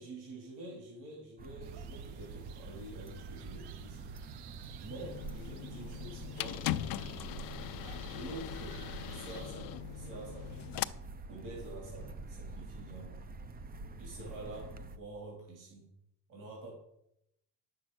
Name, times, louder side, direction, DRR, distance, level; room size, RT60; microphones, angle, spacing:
voice 1, 0.0-4.5 4.8-6.6 8.1-10.9 11.3-13.2 14.0-15.9 16.3-16.7, right 2 dB, 50° right, -2 dB, 3.4 m, -48 dB
sound 1, 1.4-15.0, right 3 dB, 25° right, 0.5 m, -47 dB
sound 2, 1.6-9.5, right 7 dB, 70° right, 0.8 m, -50 dB
sound 3, 4.9-10.8, left 15 dB, 60° left, 0.5 m, -40 dB
10.5 x 7.5 x 6.2 m, 0.77 s
cardioid pair, 165°, 41 cm